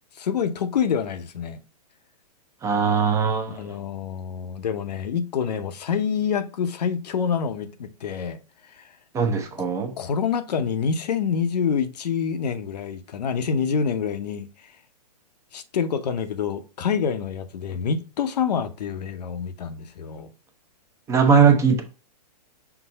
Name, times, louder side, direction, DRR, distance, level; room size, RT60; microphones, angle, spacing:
voice 1, 0.2-1.6 3.5-8.4 8.8-8.9 10.0-14.5 15.5-20.3, left 7 dB, 75° left, 0.7 m, -27 dB
voice 2, 2.6-3.6 9.1-9.9 21.1-21.8, right 6 dB, 15° right, 0.5 m, -19 dB
5.9 x 2.0 x 3.9 m
hypercardioid pair, 135°, 21 cm